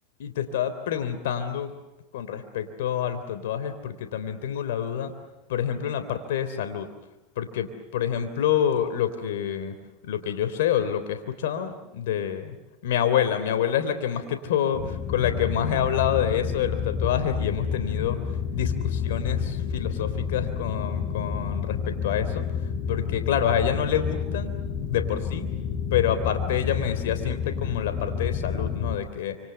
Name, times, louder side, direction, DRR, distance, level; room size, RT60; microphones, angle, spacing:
voice 1, 0.2-1.7 2.1-5.1 5.5-6.9 7.4-9.7 10.1-12.5 12.8-18.2 18.5-22.4 22.9-24.5 24.8-25.4 25.9-29.3, left 9 dB, 85° left, 9 dB, 3.4 m, -27 dB
sound 1, 14.7-29.0, left 7 dB, 45° left, 6.0 m, -29 dB
29.5 x 27.5 x 7.0 m, 1.0 s
supercardioid pair, 115°, 0 cm